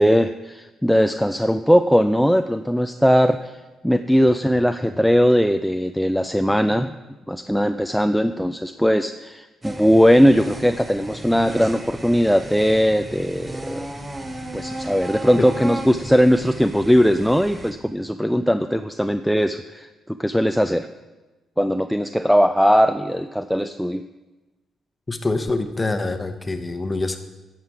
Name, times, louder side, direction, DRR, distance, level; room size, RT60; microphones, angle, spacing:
voice 1, 0.0-3.5 3.8-7.0 7.3-13.9 14.5-19.9 20.2-20.9 21.6-24.0, equal, ahead, 8 dB, 0.3 m, -19 dB
sound 1, 9.6-17.7, right 1 dB, 20° right, 1.0 m, -34 dB
voice 2, 25.1-27.2, left 2 dB, 20° left, 8 dB, 0.9 m, -25 dB
11.5 x 7.5 x 4.8 m, 1.2 s
cardioid pair, 90°, 0 cm